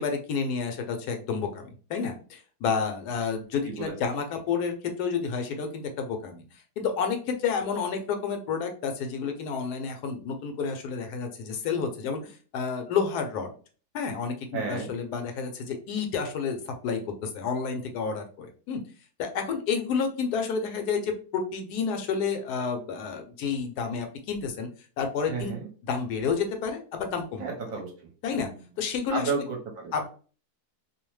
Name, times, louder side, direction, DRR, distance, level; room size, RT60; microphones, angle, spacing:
voice 1, 0.0-6.4 6.8-13.5 13.9-18.8 19.2-24.7 25.0-25.5 25.9-27.4 28.2-28.5 28.8-29.3 29.9-30.1, left 5 dB, 80° left, 5 dB, 1.1 m, -30 dB
voice 2, 14.5-14.9 25.3-25.7 27.4-27.9 28.3-28.5 29.1-29.9, right 5 dB, 65° right, 0 dB, 1.0 m, -32 dB
2.8 x 2.0 x 3.1 m, 0.39 s
omnidirectional pair, 1.7 m